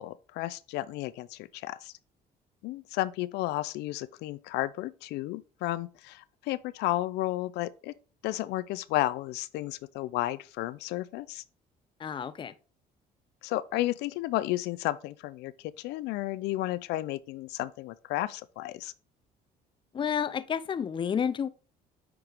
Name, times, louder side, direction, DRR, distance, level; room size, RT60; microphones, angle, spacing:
voice 1, 0.0-1.9 2.6-7.9 8.2-11.4 13.4-15.5 15.8-18.9, left 16 dB, 85° left, 0.4 m, -32 dB
voice 2, 12.0-12.5 19.9-21.5, left 7 dB, 30° left, 0.5 m, -30 dB
8.8 x 4.6 x 3.4 m
cardioid pair, 110°, 17 cm